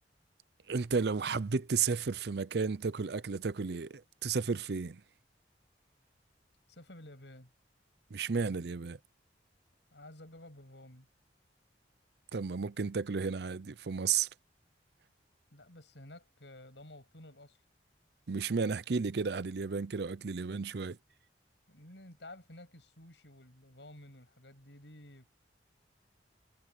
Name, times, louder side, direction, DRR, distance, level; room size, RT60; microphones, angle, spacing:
voice 1, 0.7-5.0 8.1-9.0 12.3-14.3 18.3-21.0, right 5 dB, 65° right, 0.6 m, -33 dB
voice 2, 6.7-7.5 9.9-11.1 15.5-17.6 21.7-25.3, left 1 dB, 80° left, 7.5 m, -52 dB
head